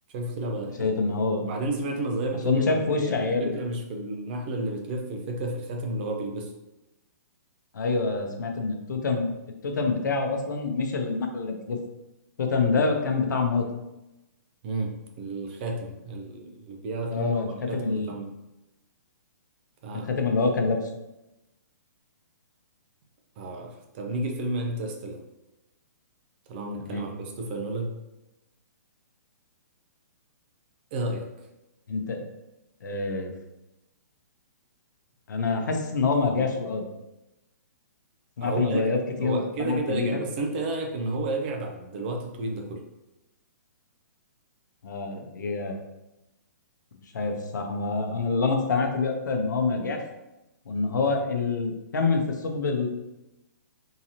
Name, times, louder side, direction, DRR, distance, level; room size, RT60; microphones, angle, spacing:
voice 1, 0.1-0.9 1.4-6.5 14.6-18.3 19.8-20.1 23.4-25.2 26.5-27.9 30.9-31.2 38.4-38.8 39.2-42.8, right 2 dB, 35° right, 2 dB, 0.5 m, -31 dB
voice 2, 0.8-1.4 2.4-3.5 7.7-9.3 9.6-11.8 12.4-13.7 17.1-18.1 19.9-20.8 26.8-27.0 31.9-32.2 32.8-33.3 35.3-36.8 38.4-40.2 44.8-45.8 47.1-50.0 50.7-52.9, left 4 dB, 80° left, 3 dB, 0.7 m, -26 dB
3.8 x 2.9 x 2.8 m, 0.96 s
hypercardioid pair, 155°, 10 cm